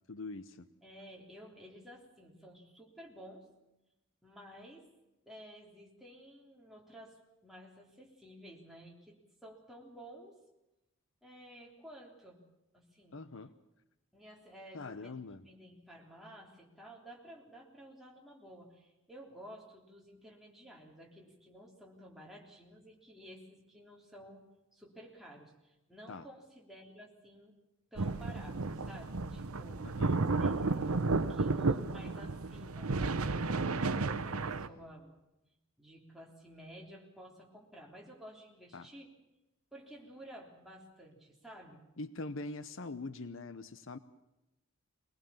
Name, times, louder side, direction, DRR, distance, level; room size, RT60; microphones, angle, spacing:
voice 1, 0.1-0.7 13.1-13.5 14.7-15.4 26.1-26.3 29.8-30.2 38.7-38.9 42.0-44.0, left 3 dB, 60° left, 13 dB, 0.8 m, -43 dB
voice 2, 0.8-3.5 4.2-4.9 5.3-10.4 11.2-12.4 12.7-13.2 14.1-15.1 15.4-24.4 24.7-27.5 27.9-29.9 30.3-35.1 35.8-39.1 39.7-41.8, equal, ahead, -2 dB, 3.5 m, -53 dB
sound 1, 28.0-34.7, right 3 dB, 85° right, 0.9 m, -32 dB
22.5 x 19.0 x 7.1 m, 0.96 s
head